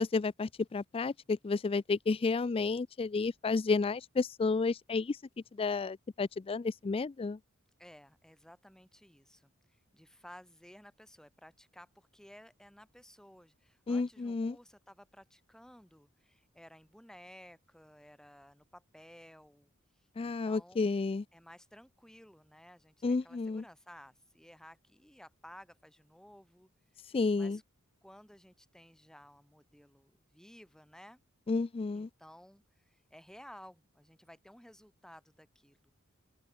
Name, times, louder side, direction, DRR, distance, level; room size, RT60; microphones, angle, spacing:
voice 1, 0.0-5.2 5.6-7.4 13.9-14.6 20.2-21.2 23.0-23.6 27.1-27.6 31.5-32.1, left 4 dB, 25° left, 0.4 m, -31 dB
voice 2, 7.8-19.7 20.2-21.0 21.3-27.6 28.0-31.2 31.9-35.9, equal, 5° left, 3.1 m, -56 dB
head